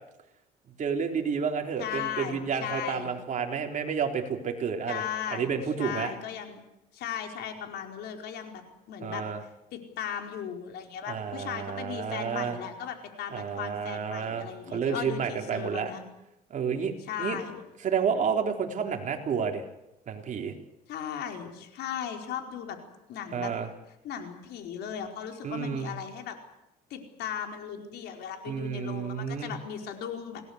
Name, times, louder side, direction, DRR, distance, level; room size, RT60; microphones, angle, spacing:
voice 1, 0.8-5.0 5.3-6.1 9.0-9.4 11.1-12.6 13.3-15.9 16.5-16.9 17.2-17.4 17.8-19.6 20.1-20.5 23.3-23.7 25.4-25.9 28.5-29.6, right 6 dB, 50° right, 3 dB, 4.0 m, -30 dB
voice 2, 1.8-3.1 4.9-6.6 6.9-9.2 9.7-16.0 17.0-17.6 20.9-22.8 23.1-23.5 24.0-26.4 26.9-30.4, left 8 dB, 75° left, 4 dB, 4.8 m, -37 dB
27.5 x 19.0 x 8.2 m, 0.90 s
cardioid pair, 110°, 17 cm